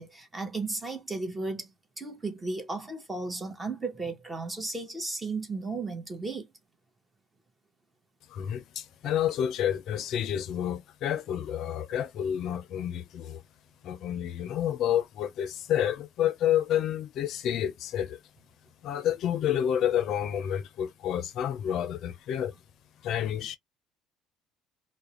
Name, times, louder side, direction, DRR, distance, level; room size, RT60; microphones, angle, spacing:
voice 1, 0.0-6.5, right 3 dB, 20° right, 0.8 m, -35 dB
voice 2, 8.3-13.4 13.8-18.2 18.8-22.5 23.0-23.6, left 10 dB, 60° left, 0.4 m, -29 dB
2.4 x 2.0 x 2.9 m
cardioid pair, 110°, 0 cm